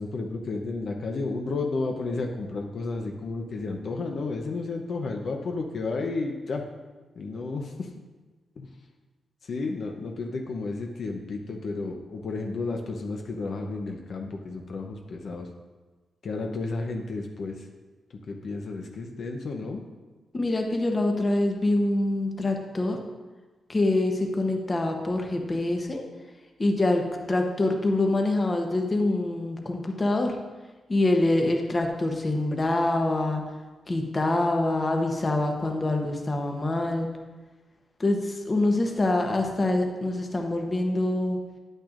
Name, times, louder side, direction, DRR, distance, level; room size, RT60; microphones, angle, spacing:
voice 1, 0.0-6.6 7.2-7.9 8.6-8.7 9.4-15.5 16.2-17.7 18.3-19.8, left 3 dB, 55° left, 2 dB, 0.7 m, -32 dB
voice 2, 20.3-23.0 23.7-26.0 26.6-27.0 27.3-30.4 30.9-33.4 33.9-37.1 38.0-41.4, left 2 dB, 25° left, 3 dB, 0.9 m, -25 dB
10.0 x 9.0 x 2.5 m, 1.3 s
wide cardioid pair, 155°, 0 cm